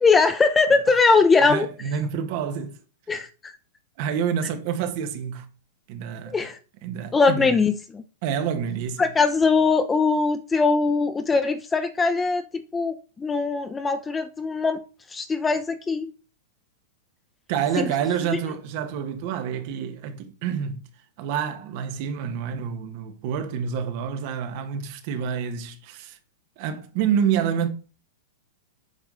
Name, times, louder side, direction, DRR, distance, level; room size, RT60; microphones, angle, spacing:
voice 1, 0.0-1.7 3.1-3.5 6.3-6.6 7.1-8.0 9.0-14.8 15.1-16.1 17.8-17.9 18.3-18.4, left 4 dB, 10° left, 0.6 m, -21 dB
voice 2, 1.5-2.8 4.0-5.5 5.9-6.4 6.8-7.5 8.2-9.0 17.5-20.8 21.2-26.2 26.6-27.7, right 8 dB, 45° right, 1.5 m, -28 dB
8.1 x 5.2 x 3.9 m
hypercardioid pair, 145°, 0 cm